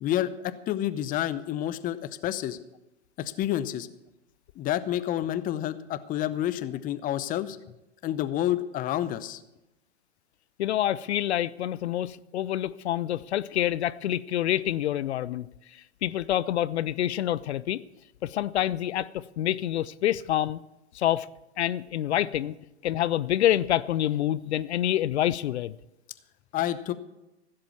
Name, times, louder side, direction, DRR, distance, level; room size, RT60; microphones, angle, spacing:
voice 1, 0.0-2.0 2.2-2.6 3.2-3.9 4.6-7.6 8.0-9.4 26.5-26.9, left 12 dB, 25° left, 0.7 m, -29 dB
voice 2, 10.6-17.8 18.2-20.6 20.9-21.3 21.6-22.5 22.8-25.8, left 12 dB, 70° left, 0.6 m, -27 dB
15.5 x 7.8 x 7.2 m
hypercardioid pair, 110°, 35 cm